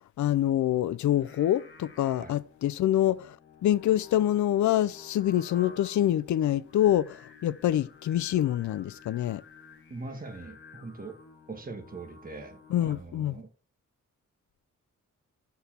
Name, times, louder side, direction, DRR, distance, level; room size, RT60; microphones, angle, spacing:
voice 1, 0.2-3.4 3.6-9.4 12.7-13.4, left 12 dB, 65° left, 0.5 m, -26 dB
Singing, 1.1-13.3, left 6 dB, 40° left, 1.3 m, -52 dB
voice 2, 9.9-11.2 11.5-13.5, right 3 dB, 25° right, 1.3 m, -42 dB
6.8 x 4.7 x 4.3 m
wide cardioid pair, 135°, 32 cm